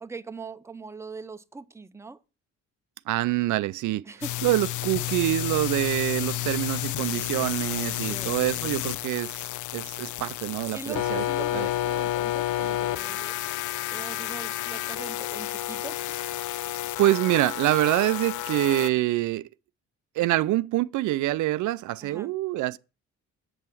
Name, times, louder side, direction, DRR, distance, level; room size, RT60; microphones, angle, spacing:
voice 1, 0.0-2.2 4.1-4.4 8.1-8.3 10.7-13.4 13.9-16.0 22.0-22.3, right 4 dB, 10° right, 0.6 m, -41 dB
voice 2, 3.1-4.1 4.4-9.3 9.7-11.2 11.5-11.7 17.0-19.5 20.2-22.8, right 16 dB, 75° right, 0.5 m, -25 dB
sound 1, 4.2-18.9, left 15 dB, 75° left, 0.5 m, -31 dB
7.8 x 5.6 x 6.0 m
cardioid pair, 90°, 30 cm